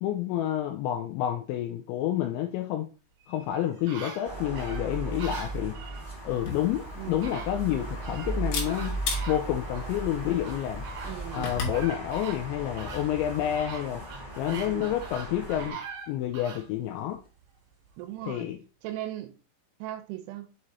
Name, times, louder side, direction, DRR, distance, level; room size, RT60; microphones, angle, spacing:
voice 1, 0.0-2.9 3.3-5.8 6.2-8.9 9.3-10.8 11.3-14.1 14.4-15.8 16.1-17.2 18.2-18.6, left 12 dB, 85° left, 2.6 m, -29 dB
sound 1, 3.2-6.1 6.8-6.9 7.2-8.3 8.7-9.9 10.4-16.7 17.2-17.3, right 5 dB, 50° right, 3.2 m, -43 dB
sound 2, 4.2-15.7, right 2 dB, 35° left, 0.7 m, -37 dB
Camera, 6.3-11.8, left 4 dB, 65° left, 3.0 m, -38 dB
voice 2, 7.0-7.3 11.0-11.5 14.5-14.9 18.0-18.5 18.8-19.3 19.8-20.5, right 13 dB, 85° right, 2.9 m, -38 dB
7.4 x 4.8 x 2.7 m
omnidirectional pair, 5.7 m